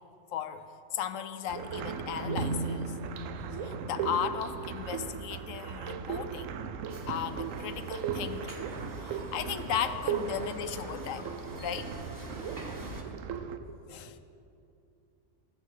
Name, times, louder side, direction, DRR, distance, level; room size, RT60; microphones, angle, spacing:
voice 1, 0.3-0.6 0.9-3.0 3.6-6.6 7.1-8.6 9.0-11.3 11.6-12.0 13.9-14.2, left 9 dB, 90° left, 11 dB, 1.0 m, -36 dB
sound 1, 1.5-13.6, right 7 dB, 90° right, 1.0 m, -37 dB
sound 2, 2.2-6.2, equal, 50° left, 0.8 m, -41 dB
sound 3, 6.9-13.0, right 1 dB, 15° right, 0.9 m, -44 dB
voice 2, 13.0-13.8 14.0-14.2, right 5 dB, 70° right, 6 dB, 0.3 m, -51 dB
13.0 x 7.4 x 6.4 m, 2.6 s
omnidirectional pair, 1.3 m